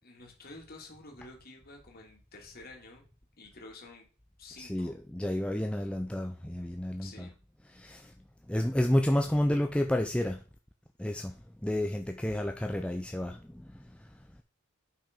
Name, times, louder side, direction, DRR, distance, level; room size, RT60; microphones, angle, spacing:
voice 1, 0.0-3.0 3.4-4.1 4.4-4.9 7.0-7.4, left 2 dB, 40° left, 2.4 m, -50 dB
voice 2, 4.6-7.3 7.7-8.1 8.5-10.4 11.0-13.4 13.7-13.8, left 1 dB, 5° left, 0.5 m, -30 dB
8.8 x 5.6 x 5.2 m
head